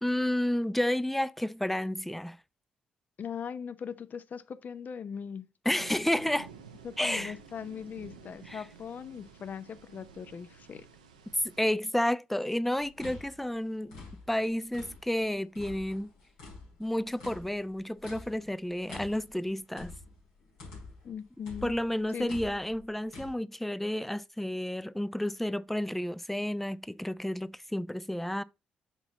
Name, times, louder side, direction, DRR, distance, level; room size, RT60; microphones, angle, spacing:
voice 1, 0.0-2.4 5.7-6.5 7.0-7.3 8.5-8.6 11.6-14.0 14.3-16.1 16.8-19.9 21.6-28.4, left 1 dB, 5° left, 0.4 m, -31 dB
voice 2, 3.2-5.5 6.8-10.9 21.0-21.8 22.1-22.3, left 7 dB, 50° left, 0.6 m, -40 dB
sound 1, 5.8-11.7, right 6 dB, 90° right, 0.6 m, -52 dB
sound 2, 12.8-15.2 15.5-21.1 21.4-23.3, left 3 dB, 80° left, 3.3 m, -47 dB
6.0 x 3.9 x 4.1 m
hypercardioid pair, 40°, 4 cm